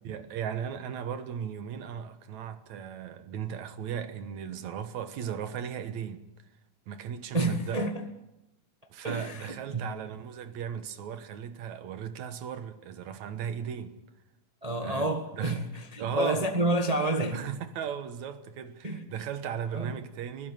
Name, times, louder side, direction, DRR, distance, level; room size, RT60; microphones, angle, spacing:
voice 1, 0.0-6.2 6.9-7.9 8.9-14.0 14.8-15.7 16.0-16.6 17.3-20.5, right 8 dB, 75° right, 2.6 m, -37 dB
voice 2, 7.3-8.1 9.0-9.8 14.6-17.4 18.8-19.0 19.7-19.9, right 1 dB, 50° right, 0.4 m, -29 dB
24.0 x 16.0 x 9.2 m
omnidirectional pair, 3.3 m